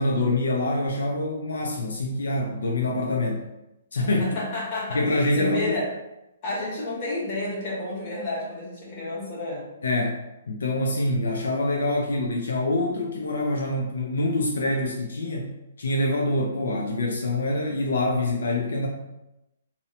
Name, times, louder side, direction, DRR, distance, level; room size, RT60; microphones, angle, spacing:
voice 1, 0.0-3.4 3.9-4.2 4.9-5.8 9.8-10.2 10.5-15.5 15.8-18.9, left 2 dB, 80° left, 0 dB, 0.4 m, -25 dB
voice 2, 4.2-5.0 5.3-5.9 6.4-9.7, left 2 dB, 35° left, -6 dB, 1.1 m, -30 dB
2.6 x 2.0 x 2.8 m, 0.92 s
hypercardioid pair, 155°, 0 cm